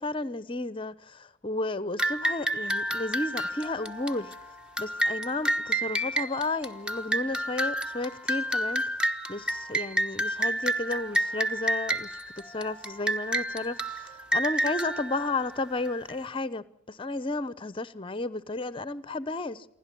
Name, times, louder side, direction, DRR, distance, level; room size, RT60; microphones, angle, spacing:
voice 1, 0.0-4.3 4.8-8.8 9.3-19.6, left 2 dB, 25° left, 0.8 m, -33 dB
sound 1, 2.0-16.1, right 1 dB, 5° right, 0.9 m, -30 dB
28.0 x 11.5 x 9.9 m
head